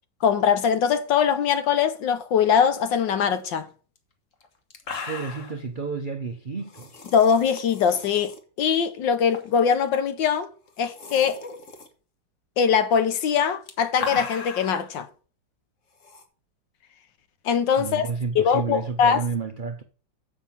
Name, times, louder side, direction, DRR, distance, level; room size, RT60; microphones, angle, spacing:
voice 1, 0.2-3.7 7.1-10.5 10.8-11.4 12.6-15.1 17.5-18.1 18.4-19.2, left 7 dB, 75° left, 1.7 m, -22 dB
sound 1, 4.0-4.1 4.4-4.5 4.7-5.6 6.7-8.4 9.3-9.6 9.9-10.0 10.7-11.9 13.3-14.9 16.0-16.2, left 4 dB, 45° left, 1.7 m, -37 dB
voice 2, 5.1-6.9 17.8-19.8, right 5 dB, 60° right, 0.5 m, -31 dB
7.3 x 6.0 x 7.2 m
omnidirectional pair, 2.0 m